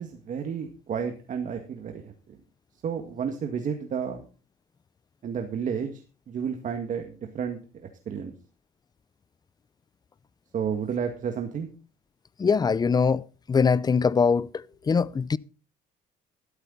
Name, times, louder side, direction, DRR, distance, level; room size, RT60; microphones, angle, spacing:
voice 1, 0.0-2.1 2.8-4.2 5.2-5.9 6.3-7.6 8.1-8.3 10.5-11.7, right 7 dB, 50° right, 1.9 m, -31 dB
voice 2, 12.4-13.2 13.5-15.4, left 5 dB, 25° left, 0.5 m, -22 dB
14.0 x 12.5 x 4.0 m
cardioid pair, 110°, 17 cm